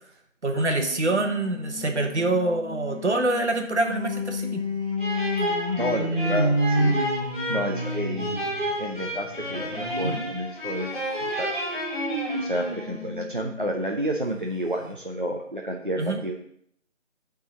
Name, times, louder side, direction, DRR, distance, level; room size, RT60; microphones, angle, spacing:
voice 1, 0.4-4.6 16.0-16.2, right 2 dB, 60° right, 5 dB, 1.1 m, -25 dB
sound 1, 0.7-10.3 10.7-13.8 14.3-14.4 14.7-14.8, equal, 25° right, 1.9 m, -30 dB
sound 2, 5.0-13.0, equal, 40° left, 2.7 m, -31 dB
voice 2, 5.8-7.0 7.5-8.4 8.8-11.5 12.4-16.4, equal, 45° right, 0 dB, 0.5 m, -30 dB
6.9 x 3.8 x 6.1 m, 0.69 s
figure-of-eight pair, 175°, 38 cm